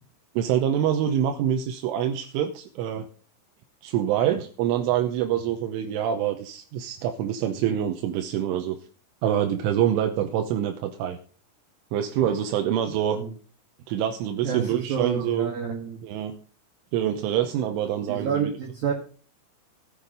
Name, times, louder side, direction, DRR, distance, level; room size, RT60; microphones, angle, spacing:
voice 1, 0.4-3.1 3.8-8.8 9.2-11.2 11.9-13.2 13.9-15.5 16.0-16.4 16.9-18.5, right 10 dB, 80° right, 6 dB, 3.2 m, -25 dB
voice 2, 14.4-16.0 18.1-18.9, right 7 dB, 55° right, 0 dB, 2.9 m, -28 dB
14.0 x 9.0 x 5.3 m, 0.41 s
omnidirectional pair, 6.0 m